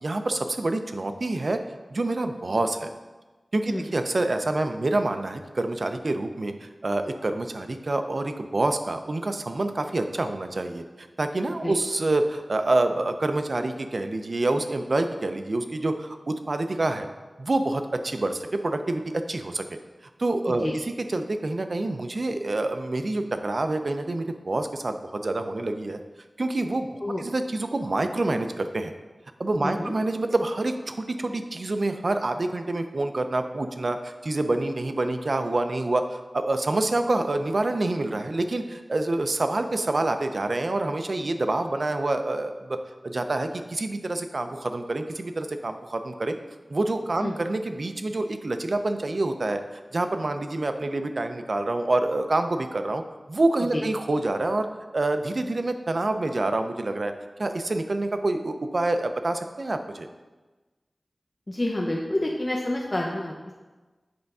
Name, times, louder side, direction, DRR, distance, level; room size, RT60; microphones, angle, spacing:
voice 1, 0.0-1.6 1.9-2.9 3.5-17.1 17.4-19.6 20.2-20.7 21.1-26.0 26.4-28.9 29.4-42.8 43.0-46.3 46.7-49.6 49.9-53.0 53.3-54.7 54.9-57.1 57.4-60.1, right 2 dB, 60° right, 7 dB, 0.5 m, -27 dB
voice 2, 29.6-29.9 47.2-47.4 53.7-53.8 61.5-63.5, left 1 dB, 30° left, -2 dB, 0.7 m, -28 dB
7.8 x 3.4 x 5.4 m, 1.2 s
wide cardioid pair, 70°, 0 cm